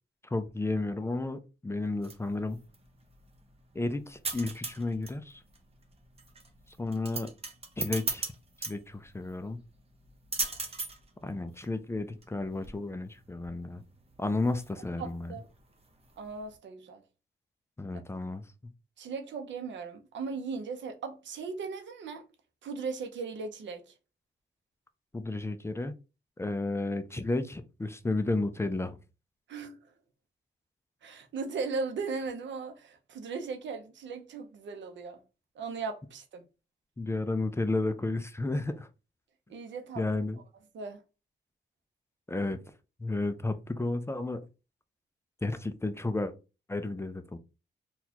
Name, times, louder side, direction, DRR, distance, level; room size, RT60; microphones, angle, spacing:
voice 1, 0.3-2.6 3.7-5.4 6.8-7.3 7.8-8.3 8.7-9.6 11.2-13.8 14.2-15.4 17.8-18.4 25.1-25.9 26.4-29.0 37.0-38.9 40.0-40.4 42.3-42.6 43.0-44.5 45.4-46.3 46.7-47.4, left 2 dB, 15° left, 0.4 m, -32 dB
sound 1, 1.8-16.6, right 3 dB, 35° right, 0.7 m, -40 dB
voice 2, 15.0-15.5 16.2-17.0 19.0-22.3 22.6-23.8 29.5-29.8 31.0-35.2 35.6-36.4 39.5-40.0 40.7-41.0, right 4 dB, 90° right, 0.7 m, -37 dB
4.1 x 2.3 x 2.8 m
cardioid pair, 95°, 19 cm